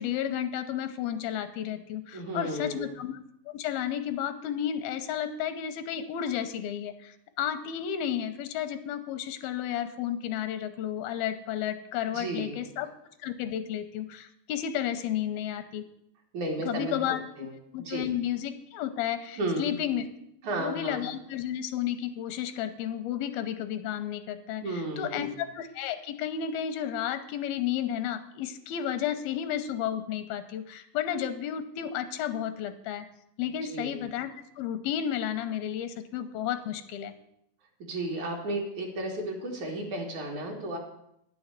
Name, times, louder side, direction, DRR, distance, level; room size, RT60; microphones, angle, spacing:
voice 1, 0.0-3.2 3.5-12.9 13.2-15.8 16.6-20.0 20.6-33.1 33.4-34.3 34.6-37.1, left 10 dB, 85° left, 9 dB, 2.6 m, -32 dB
voice 2, 2.1-3.0 12.1-12.6 16.3-16.9 17.4-18.1 19.4-19.7 20.4-21.0 24.6-25.3 33.7-34.0 37.8-40.8, right 2 dB, 55° right, 0 dB, 3.1 m, -33 dB
10.0 x 7.0 x 8.2 m, 0.77 s
omnidirectional pair, 4.3 m